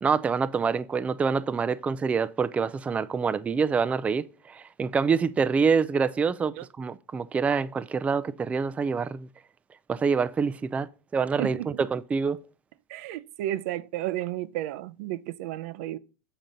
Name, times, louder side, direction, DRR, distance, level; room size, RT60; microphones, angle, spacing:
voice 1, 0.0-9.3 9.9-10.9 11.1-12.4, right 5 dB, 15° right, 0.4 m, -26 dB
voice 2, 11.4-11.8 12.9-16.0, right 14 dB, 70° right, 0.5 m, -32 dB
7.5 x 4.1 x 5.1 m
supercardioid pair, 125°, 8 cm